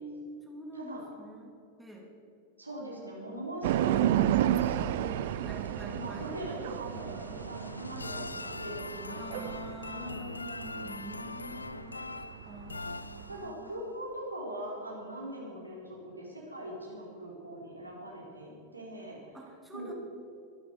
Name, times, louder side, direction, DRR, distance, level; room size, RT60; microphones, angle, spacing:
voice 1, 0.0-2.1 5.3-6.3 9.1-10.3 10.8-13.8 19.3-19.9, right 1 dB, 5° right, -2 dB, 3.0 m, -46 dB
voice 2, 0.7-1.0 2.6-5.3 5.8-9.5 9.9-10.9 13.3-19.2 19.7-19.9, right 1 dB, 85° right, -4 dB, 4.7 m, -41 dB
sound 1, 3.6-13.5, right 12 dB, 55° right, 0.6 m, -32 dB
sound 2, 4.8-13.7, left 3 dB, 80° left, 0.3 m, -43 dB
23.5 x 11.5 x 5.0 m, 2.6 s
figure-of-eight pair, 90°, 0 cm